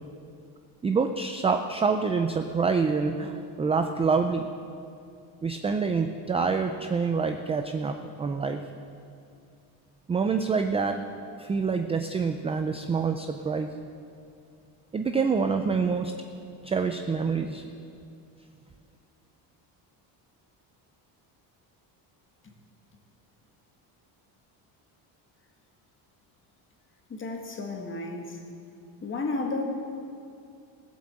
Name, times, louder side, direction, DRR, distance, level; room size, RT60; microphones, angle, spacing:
voice 1, 0.8-4.4 5.4-8.6 10.1-11.0 11.4-13.7 14.9-16.1 16.6-17.6, right 5 dB, 15° right, 6 dB, 0.3 m, -26 dB
voice 2, 27.1-28.4 29.0-29.6, left 3 dB, 30° left, 2 dB, 1.8 m, -32 dB
16.0 x 7.8 x 7.4 m, 2.5 s
cardioid pair, 150°, 43 cm